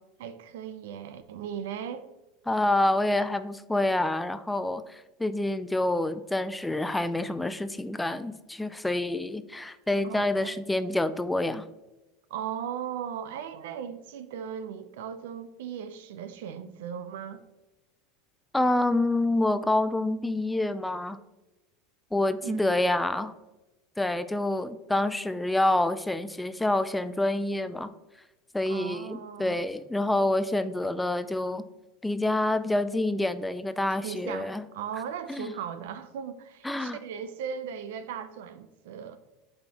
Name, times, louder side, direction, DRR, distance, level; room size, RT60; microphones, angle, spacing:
voice 1, 0.2-2.1 10.0-10.6 12.3-17.4 22.4-22.7 28.7-29.6 34.0-39.2, right 8 dB, 75° right, 0.5 m, -37 dB
voice 2, 2.5-11.6 18.5-21.2 22.1-23.3 24.0-27.9 28.5-31.6 32.0-34.7 35.3-35.5 36.6-37.0, left 1 dB, 5° left, 0.3 m, -27 dB
7.6 x 4.3 x 2.9 m
hypercardioid pair, 100°, 0 cm